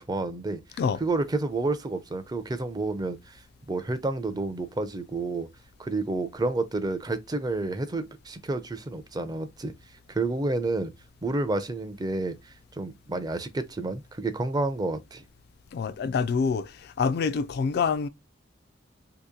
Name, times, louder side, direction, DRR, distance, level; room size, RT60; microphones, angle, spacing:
voice 1, 0.0-0.6 1.0-3.4 3.7-5.5 5.8-9.7 10.1-10.9 11.2-15.2, right 2 dB, 20° right, 0.5 m, -30 dB
voice 2, 15.7-18.1, left 5 dB, 55° left, 0.3 m, -26 dB
3.0 x 2.8 x 3.6 m
head